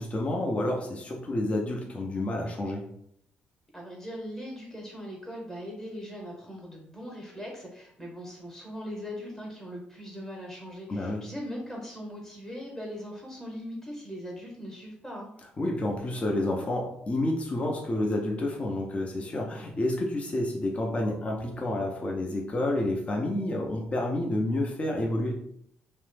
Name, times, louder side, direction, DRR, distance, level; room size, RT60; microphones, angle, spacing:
voice 1, 0.0-2.9 10.9-11.2 15.6-25.3, left 1 dB, 30° left, 0 dB, 0.5 m, -29 dB
voice 2, 3.7-15.3, equal, 10° left, -2 dB, 0.9 m, -40 dB
2.6 x 2.0 x 3.2 m, 0.71 s
supercardioid pair, 70°, 4 cm